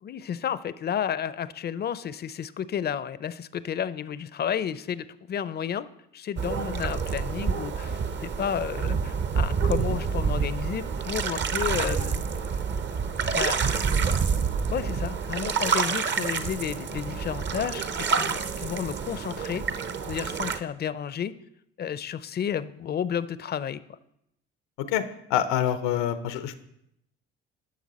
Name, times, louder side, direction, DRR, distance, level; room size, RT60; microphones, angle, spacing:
voice 1, 0.0-5.9 6.1-12.2 13.3-13.6 13.9-14.4 14.7-19.6 20.0-21.3 21.8-24.0, left 8 dB, 35° left, 16 dB, 0.5 m, -32 dB
sound 1, 6.4-20.6, right 5 dB, 40° right, 0.7 m, -28 dB
voice 2, 25.3-26.6, left 10 dB, 85° left, 11 dB, 0.8 m, -26 dB
11.5 x 6.0 x 4.1 m, 0.79 s
supercardioid pair, 70°, 29 cm